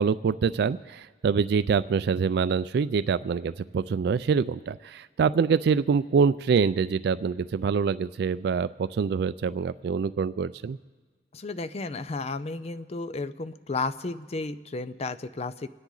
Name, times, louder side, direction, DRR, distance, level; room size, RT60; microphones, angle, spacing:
voice 1, 0.0-10.8, right 6 dB, 65° right, 15 dB, 0.3 m, -25 dB
voice 2, 11.3-15.7, left 3 dB, 35° left, 12 dB, 0.5 m, -33 dB
27.0 x 10.0 x 3.9 m, 1.4 s
head